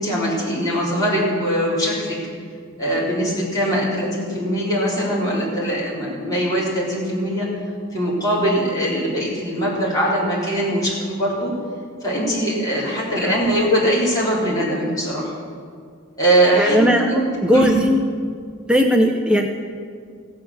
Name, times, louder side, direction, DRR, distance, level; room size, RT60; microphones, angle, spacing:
voice 1, 0.0-2.2 2.8-7.5 7.9-11.5 12.0-15.3 16.2-16.8 17.1-17.7, right 1 dB, 15° left, -7 dB, 3.8 m, -21 dB
voice 2, 16.6-17.1 17.4-18.0 18.7-19.5, equal, 5° right, 3 dB, 0.5 m, -17 dB
16.5 x 7.5 x 7.1 m, 2.1 s
head